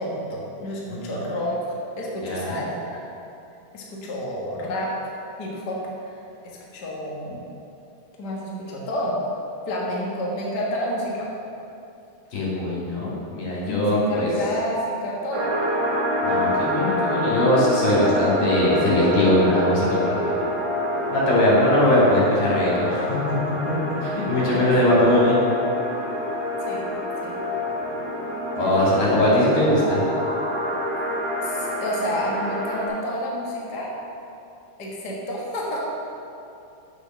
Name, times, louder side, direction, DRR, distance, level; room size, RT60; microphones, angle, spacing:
voice 1, 0.0-3.0 3.7-5.1 5.4-5.8 6.0-6.2 6.7-7.4 8.2-9.2 9.7-11.3 13.7-15.5 24.4-24.7 26.6-26.9 27.2-27.4 28.6-29.0 31.4-33.9 34.8-35.8, equal, 50° left, -4 dB, 1.2 m, -29 dB
voice 2, 0.9-1.2 2.2-2.6 12.3-14.3 16.2-20.3 21.1-23.3 24.0-25.4 28.6-30.0, left 1 dB, 80° left, -6 dB, 4.4 m, -21 dB
sound 1, 15.3-32.9, equal, 50° right, 2.9 m, -26 dB
8.4 x 7.0 x 6.3 m, 2.7 s
omnidirectional pair, 4.0 m